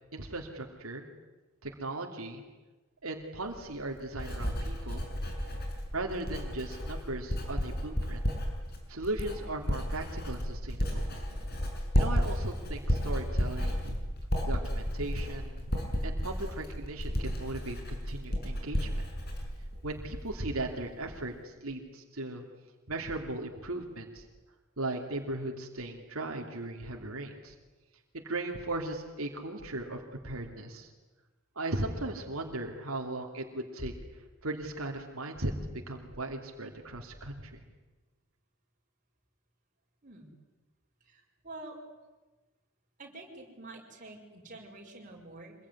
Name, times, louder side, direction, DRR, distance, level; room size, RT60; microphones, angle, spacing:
voice 1, 0.1-1.0 1.6-2.4 3.0-5.0 5.9-8.2 8.9-11.1 11.9-14.0 14.5-15.7 16.0-19.0 19.8-22.4 22.9-24.2 24.8-27.5 28.1-30.9 31.5-33.9 34.4-37.6, right 2 dB, 90° right, 2 dB, 2.9 m, -37 dB
Writing, 3.4-20.5 20.8-21.2, equal, 50° left, 6.4 m, -33 dB
voice 2, 41.0-41.8 43.0-45.5, right 2 dB, 40° right, 0 dB, 5.8 m, -47 dB
26.0 x 22.5 x 9.9 m, 1.2 s
head